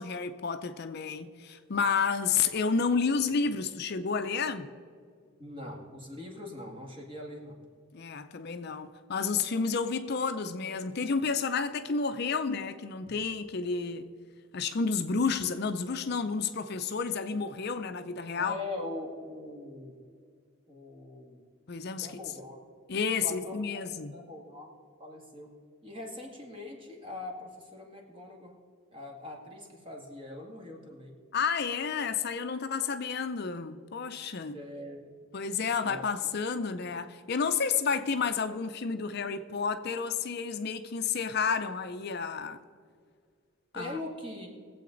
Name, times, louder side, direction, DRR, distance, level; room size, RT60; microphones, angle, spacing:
voice 1, 0.0-4.7 7.9-14.1 14.5-18.6 21.7-22.1 22.9-24.1 31.3-34.6 35.3-42.6 43.7-44.0, left 5 dB, 50° left, 0.5 m, -30 dB
voice 2, 5.4-7.6 18.4-20.0 20.7-21.4 21.9-22.6 23.2-23.6 24.1-24.7 25.0-25.5 25.8-28.5 28.9-31.1 34.5-35.1 35.8-36.0 43.7-44.6, left 2 dB, 25° right, 1.9 m, -42 dB
21.0 x 7.8 x 3.9 m
head